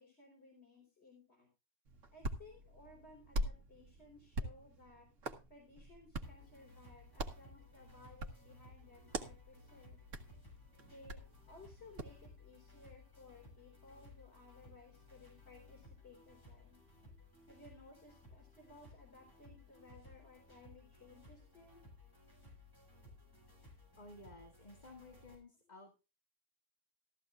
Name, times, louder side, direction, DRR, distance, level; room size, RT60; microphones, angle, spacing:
voice 1, 0.0-1.5 2.1-5.1 5.5-10.0 10.8-16.8 17.5-21.8, left 3 dB, 60° left, 0 dB, 4.4 m, -59 dB
Hands, 1.8-12.2, right 1 dB, 90° right, 1.8 m, -45 dB
sound 1, 6.2-25.4, left 2 dB, 15° left, 7.2 m, -60 dB
voice 2, 24.0-25.9, left 2 dB, 35° left, 3 dB, 2.1 m, -55 dB
15.0 x 14.5 x 2.4 m, 0.29 s
omnidirectional pair, 1.3 m